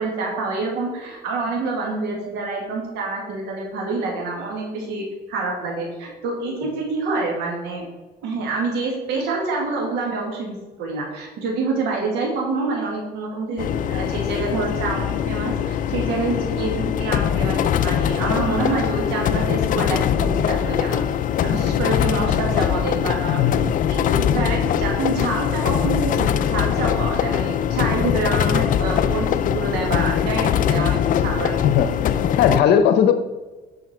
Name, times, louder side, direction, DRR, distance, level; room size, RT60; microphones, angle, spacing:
voice 1, 0.0-7.9 8.2-21.0 21.4-31.7, right 3 dB, 90° right, -1 dB, 2.2 m, -27 dB
sound 1, 13.6-32.6, left 9 dB, 50° left, 0.5 m, -22 dB
voice 2, 31.6-33.1, left 8 dB, 80° left, 9 dB, 0.8 m, -18 dB
9.7 x 5.7 x 4.3 m, 1.2 s
cardioid pair, 110°, 17 cm